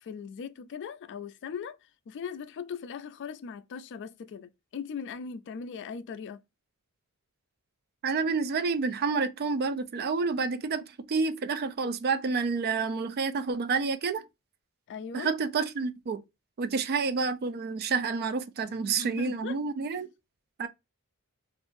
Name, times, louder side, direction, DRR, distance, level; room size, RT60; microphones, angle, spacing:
voice 1, 0.0-1.8 2.1-6.4 14.9-15.3 18.7-19.6 19.9-20.0, left 6 dB, 55° left, 0.3 m, -39 dB
voice 2, 8.0-14.2 15.1-16.2 16.6-20.1 20.6-20.7, right 4 dB, 45° right, 0.4 m, -29 dB
3.6 x 2.5 x 2.6 m
head